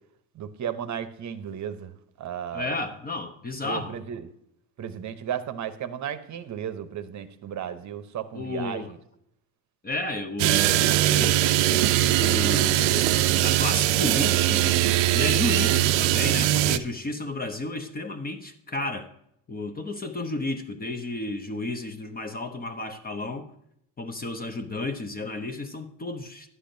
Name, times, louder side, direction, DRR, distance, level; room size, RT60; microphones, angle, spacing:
voice 1, 0.3-1.9 2.2-2.8 3.6-4.3 4.8-8.8, right 9 dB, 40° right, 11 dB, 0.8 m, -34 dB
voice 2, 2.5-3.9 8.3-8.9 9.8-13.1 13.4-14.8 15.1-19.1 19.5-23.5 24.0-26.5, left 2 dB, 20° left, 6 dB, 0.8 m, -32 dB
sound 1, 10.4-16.8, right 14 dB, 80° right, 0.6 m, -21 dB
11.0 x 8.4 x 2.7 m, 0.74 s
supercardioid pair, 100°, 43 cm